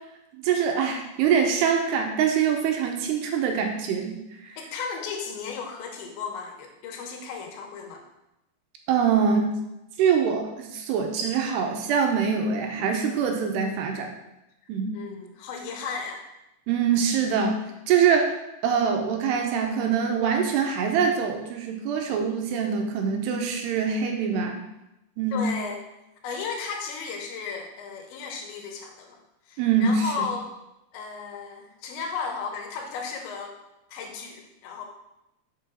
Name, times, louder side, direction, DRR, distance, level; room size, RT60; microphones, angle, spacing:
voice 1, 0.4-4.2 8.9-9.5 10.0-14.1 14.7-15.0 16.7-17.6 17.9-18.3 18.6-24.6 25.2-25.5 29.6-30.3, right 6 dB, 75° right, 3 dB, 2.8 m, -24 dB
voice 2, 4.6-8.1 14.6-16.3 25.3-25.8 26.2-29.2 29.5-30.5 30.9-33.6 33.9-34.9, left 5 dB, 85° left, 3 dB, 3.4 m, -35 dB
7.0 x 5.8 x 6.3 m, 0.91 s
omnidirectional pair, 5.1 m